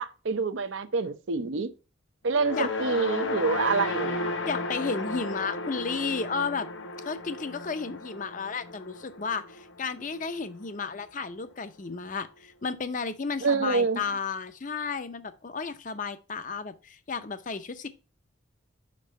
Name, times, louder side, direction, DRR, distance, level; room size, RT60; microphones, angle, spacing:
voice 1, 0.0-1.7 2.2-4.4 13.4-14.0, right 4 dB, 80° right, 0.6 m, -27 dB
sound 1, 2.3-10.6, left 2 dB, 75° left, 0.8 m, -34 dB
voice 2, 4.4-6.7 7.0-17.9, left 5 dB, 40° left, 0.6 m, -33 dB
5.3 x 5.1 x 5.4 m
head